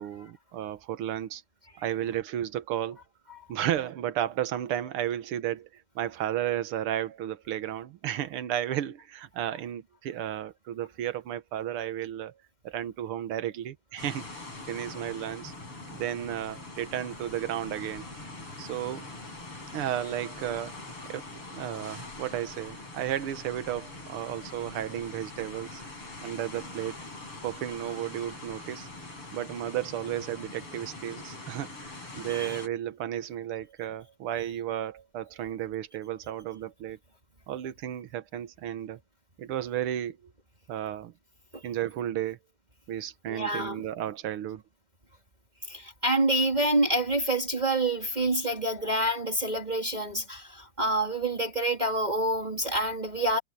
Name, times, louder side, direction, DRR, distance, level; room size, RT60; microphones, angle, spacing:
voice 1, 0.0-1.4 1.8-3.0 3.5-12.4 12.6-15.5 15.9-18.0 18.6-19.1 19.7-20.7 21.1-25.8 26.2-27.0 27.4-28.9 29.3-37.0 37.5-39.0 39.4-40.3 40.7-41.1 41.6-42.4 42.9-44.6, right 11 dB, 80° right, 2.0 m, -33 dB
sound 1, 14.0-32.7, left 2 dB, 90° left, 8.8 m, -43 dB
voice 2, 32.3-32.6 41.5-41.6 43.3-43.8 45.7-53.4, right 1 dB, 20° right, 2.2 m, -27 dB
omnidirectional pair, 2.4 m